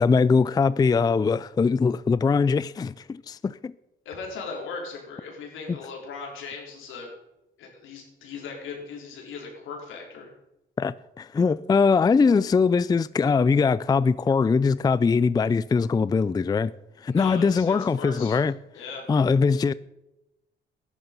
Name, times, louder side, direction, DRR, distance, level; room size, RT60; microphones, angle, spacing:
voice 1, 0.0-3.7 10.8-16.7 17.0-18.5 19.1-19.7, left 5 dB, 20° left, 0.4 m, -22 dB
voice 2, 4.0-7.1 7.6-10.3 17.1-18.4 18.7-19.0, left 4 dB, 85° left, 4.6 m, -38 dB
14.5 x 11.0 x 5.6 m
cardioid pair, 90°, 20 cm